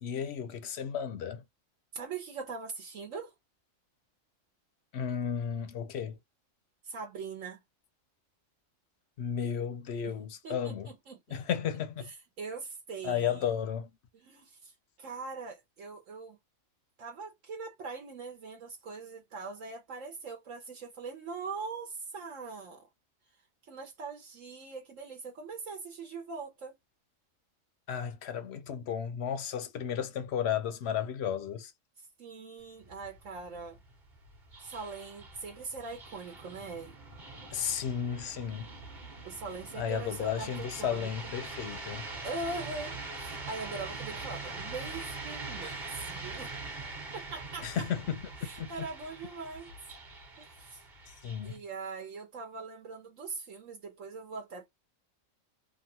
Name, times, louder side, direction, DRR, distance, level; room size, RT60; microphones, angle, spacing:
voice 1, 0.0-1.4 4.9-6.2 9.2-10.9 11.3-12.1 13.0-13.9 27.9-31.7 37.5-38.7 39.8-42.1 47.6-48.2 48.6-48.7 51.2-51.6, left 8 dB, 65° left, 0.7 m, -33 dB
voice 2, 1.9-3.3 6.8-7.6 10.0-10.1 10.4-11.4 12.1-13.5 14.1-14.7 15.0-16.4 17.0-22.9 23.7-26.7 32.2-33.8 34.6-36.9 39.2-41.1 42.2-46.5 47.1-47.9 48.4-49.7 50.4-51.1 51.4-54.7, right 4 dB, 75° right, 1.2 m, -42 dB
sound 1, 32.6-51.6, right 3 dB, 40° right, 1.1 m, -43 dB
3.0 x 2.4 x 2.6 m
omnidirectional pair, 1.4 m